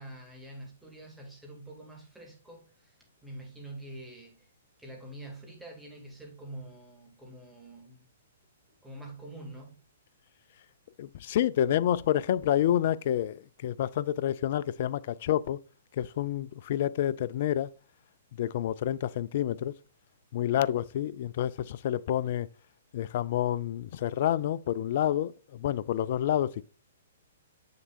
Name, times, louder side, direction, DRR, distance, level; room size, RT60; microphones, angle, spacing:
voice 1, 0.0-3.0 3.2-4.5 4.8-8.1 8.8-9.8, right 1 dB, 5° right, 2.4 m, -46 dB
voice 2, 11.0-15.6 16.0-17.7 18.4-19.7 20.3-22.5 22.9-26.6, left 11 dB, 45° left, 0.3 m, -28 dB
7.2 x 6.6 x 2.5 m
figure-of-eight pair, 115°, 0 cm